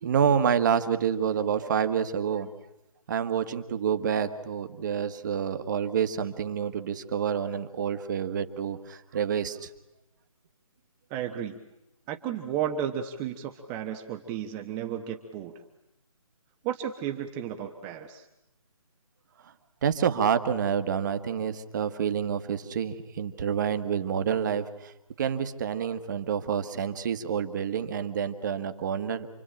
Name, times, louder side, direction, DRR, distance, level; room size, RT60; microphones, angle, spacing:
voice 1, 0.0-2.5 3.1-9.7 19.4-19.5 19.8-24.9 25.2-29.3, right 7 dB, 35° right, 10 dB, 1.6 m, -28 dB
voice 2, 11.1-11.6 12.1-15.5 16.6-18.3, right 9 dB, 15° right, 4 dB, 1.1 m, -33 dB
28.0 x 23.0 x 8.9 m, 0.93 s
figure-of-eight pair, 145°, 18 cm